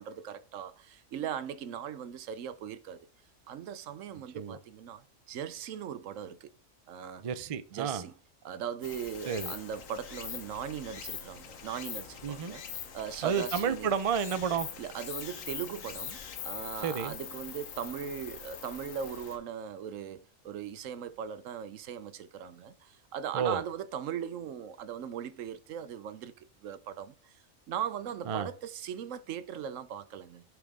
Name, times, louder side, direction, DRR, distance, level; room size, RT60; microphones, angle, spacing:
voice 1, 0.0-3.1 3.5-6.5 6.9-7.2 7.7-8.1 8.4-12.6 12.9-14.0 14.8-16.2 16.4-27.3 27.7-30.4, right 8 dB, 80° right, 1.0 m, -39 dB
voice 2, 7.2-8.0 9.3-9.5 12.2-12.5 13.2-14.7 16.8-17.1 23.3-23.6 28.3-28.5, right 7 dB, 45° right, 0.4 m, -31 dB
Stream, 8.8-19.4, left 7 dB, 85° left, 1.4 m, -43 dB
8.5 x 4.6 x 3.6 m
omnidirectional pair, 1.3 m